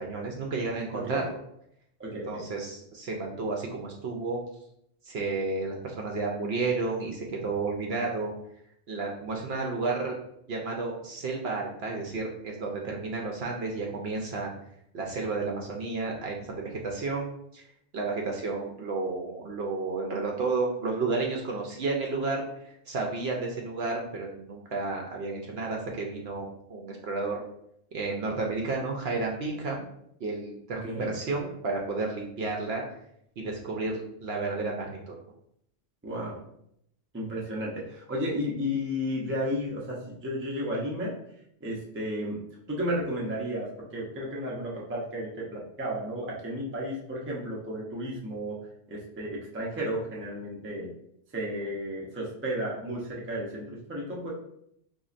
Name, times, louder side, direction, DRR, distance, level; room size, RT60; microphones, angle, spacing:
voice 1, 0.0-1.4 2.1-4.4 5.0-8.3 8.9-10.2 10.5-14.5 14.9-17.3 17.5-17.6 17.9-27.4 27.9-29.8 30.2-32.8 33.4-35.2, right 3 dB, 60° right, 0 dB, 0.7 m, -32 dB
voice 2, 0.9-1.2 2.0-2.5 30.8-31.1 36.0-36.4 37.1-41.1 41.6-42.4 42.7-48.6 48.9-50.9 51.3-54.3, equal, 15° right, -4 dB, 0.5 m, -33 dB
4.0 x 2.7 x 2.4 m, 0.74 s
omnidirectional pair, 1.3 m